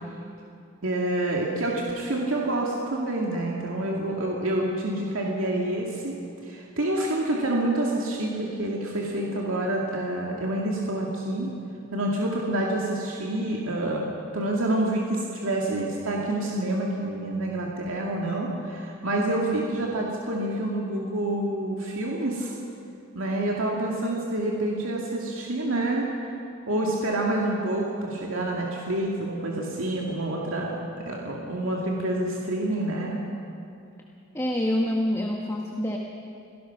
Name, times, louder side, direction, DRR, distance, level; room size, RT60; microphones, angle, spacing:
voice 1, 0.8-6.1 6.4-11.5 11.9-14.0 14.3-22.6 23.1-26.3 26.7-33.2, right 1 dB, 80° right, -2 dB, 2.4 m, -27 dB
voice 2, 34.3-36.0, left 1 dB, 15° left, 0 dB, 1.3 m, -26 dB
26.5 x 18.0 x 6.0 m, 2.6 s
head